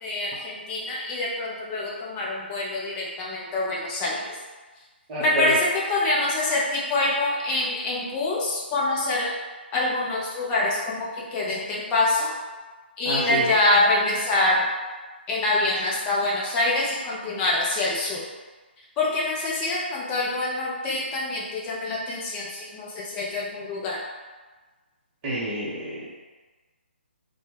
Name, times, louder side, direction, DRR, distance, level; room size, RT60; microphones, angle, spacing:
voice 1, 0.0-4.4 5.2-5.6 5.9-9.3 9.7-11.0 11.3-12.3 13.0-14.6 15.3-18.2 19.0-24.0, left 2 dB, 15° left, -5 dB, 0.5 m, -25 dB
voice 2, 5.1-5.6 13.0-13.5 25.2-26.2, equal, 25° right, -8 dB, 0.6 m, -28 dB
2.1 x 2.0 x 3.2 m, 1.3 s
figure-of-eight pair, 140°, 6 cm